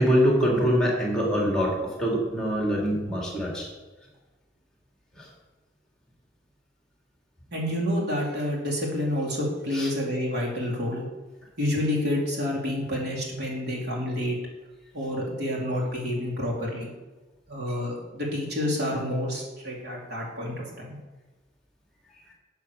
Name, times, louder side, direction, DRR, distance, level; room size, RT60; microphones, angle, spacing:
voice 1, 0.0-3.7 9.7-9.9, equal, 5° left, -3 dB, 2.9 m, -24 dB
voice 2, 7.5-11.1 11.6-14.4 14.9-16.9 17.5-21.0, left 1 dB, 60° right, -3 dB, 3.6 m, -29 dB
9.9 x 8.0 x 6.8 m, 1.2 s
head